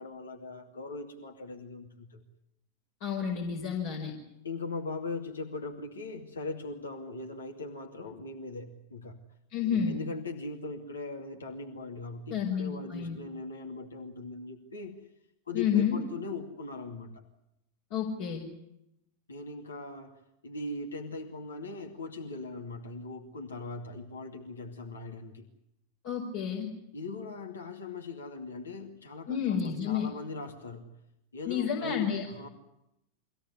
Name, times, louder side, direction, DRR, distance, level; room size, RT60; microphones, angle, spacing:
voice 1, 0.0-2.2 4.4-9.2 9.6-15.0 15.5-17.1 19.3-25.5 26.9-30.9 31.3-32.5, left 3 dB, 75° left, 2 dB, 2.5 m, -40 dB
voice 2, 3.0-4.1 9.5-10.0 12.3-13.2 15.5-16.0 17.9-18.4 26.0-26.7 29.3-30.1 31.4-32.3, left 8 dB, 50° left, -2 dB, 5.3 m, -30 dB
25.0 x 17.0 x 9.8 m, 0.83 s
figure-of-eight pair, 90°, 0 cm